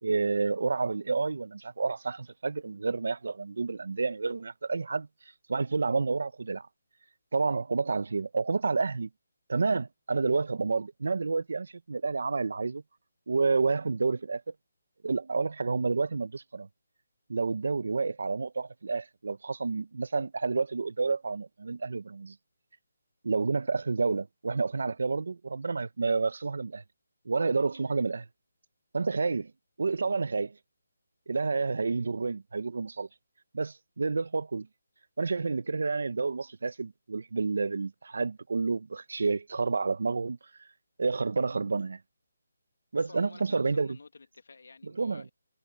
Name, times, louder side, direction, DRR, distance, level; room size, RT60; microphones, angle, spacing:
voice 1, 0.0-5.1 5.5-6.7 7.3-9.1 9.5-12.8 13.3-14.5 15.0-16.7 17.3-22.3 23.2-26.8 27.2-28.3 28.9-29.5 29.8-30.5 31.3-33.1 33.5-34.7 35.2-40.4 41.0-42.0 42.9-44.0 44.8-45.2, right 4 dB, 70° right, 1.0 m, -29 dB
voice 2, 43.0-45.3, left 4 dB, 75° left, 2.6 m, -51 dB
hypercardioid pair, 170°, 0 cm